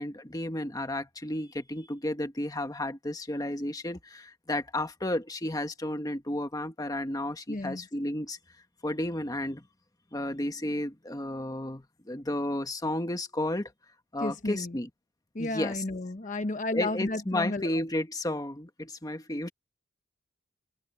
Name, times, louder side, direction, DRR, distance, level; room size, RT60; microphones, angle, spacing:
voice 1, 0.0-8.4 8.8-9.6 10.1-13.7 14.1-14.9 15.4-15.8 16.7-19.5, left 1 dB, 20° left, 1.5 m, -32 dB
voice 2, 7.5-7.8 14.2-14.8 15.3-17.8, left 2 dB, 40° left, 1.0 m, -32 dB
head